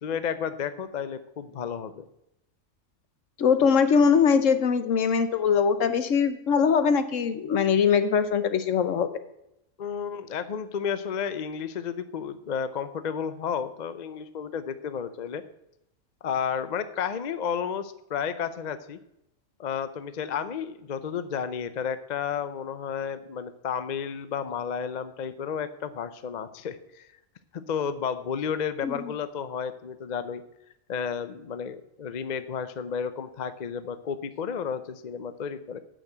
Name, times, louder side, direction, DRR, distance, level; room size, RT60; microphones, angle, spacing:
voice 1, 0.0-2.0 9.8-15.4 16.2-19.0 19.6-27.1 27.5-30.4 30.9-35.8, left 7 dB, 45° left, 12 dB, 0.6 m, -32 dB
voice 2, 3.4-9.1 28.8-28.9, left 6 dB, 70° left, 11 dB, 1.2 m, -22 dB
8.9 x 6.4 x 7.9 m, 0.83 s
omnidirectional pair, 1.4 m